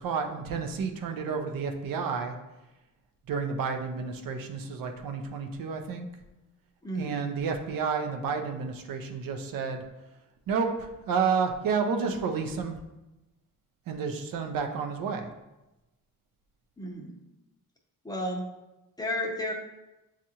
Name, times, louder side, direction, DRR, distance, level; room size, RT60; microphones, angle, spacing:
voice 1, 0.0-2.3 3.3-6.1 6.9-9.8 10.5-12.8 13.9-15.3, right 5 dB, 70° right, 5 dB, 0.6 m, -30 dB
voice 2, 6.8-7.2 16.8-17.1 18.0-18.5 19.0-19.5, left 1 dB, 10° left, -1 dB, 0.5 m, -32 dB
7.4 x 2.5 x 2.8 m, 0.99 s
cardioid pair, 140°, 35 cm